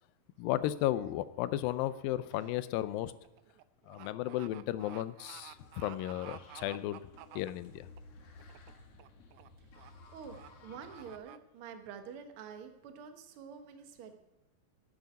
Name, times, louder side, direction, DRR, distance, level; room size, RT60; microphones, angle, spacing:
voice 1, 0.4-3.1 3.9-7.0 7.4-7.9, left 14 dB, 85° left, 14 dB, 2.4 m, -34 dB
sound 1, 1.9-2.2 2.5-8.0 8.4-8.7 9.0-9.5 9.8-9.9 10.3-10.5 10.9-11.4, right 15 dB, 90° right, 1.7 m, -52 dB
sound 2, 5.3-11.2, left 3 dB, 55° left, 2.1 m, -56 dB
voice 2, 9.7-14.2, right 7 dB, 60° right, 6 dB, 1.4 m, -48 dB
10.0 x 8.0 x 9.2 m, 0.94 s
omnidirectional pair, 4.1 m